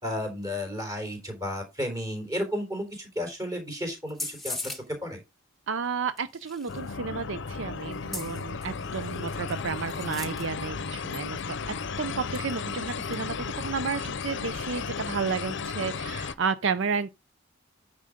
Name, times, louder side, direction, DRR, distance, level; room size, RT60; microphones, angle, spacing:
voice 1, 0.0-5.2, left 1 dB, 20° right, 3.6 m, -33 dB
sound 1, 4.1-4.8 6.2-6.9 7.9-10.7 11.1-11.2 11.4-11.5 12.3-12.6 12.9-13.2, left 2 dB, ahead, 1.4 m, -40 dB
voice 2, 5.7-17.1, right 5 dB, 65° right, 0.6 m, -32 dB
sound 2, 6.7-16.3, left 5 dB, 65° left, 0.7 m, -34 dB
9.4 x 4.8 x 5.0 m
head